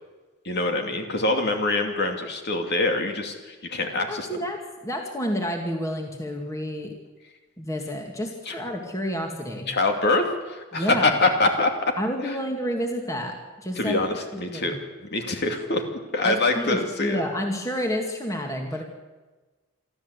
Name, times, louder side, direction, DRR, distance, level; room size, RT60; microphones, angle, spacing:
voice 1, 0.4-4.3 8.5-8.6 9.7-11.9 12.2-12.4 13.8-15.8 16.1-17.2, left 2 dB, 50° left, 4 dB, 2.7 m, -24 dB
voice 2, 4.1-6.9 7.6-9.7 10.7-11.1 12.0-14.0 14.5-14.8 16.2-18.8, equal, 15° left, 2 dB, 2.3 m, -29 dB
25.5 x 13.5 x 8.3 m, 1.3 s
head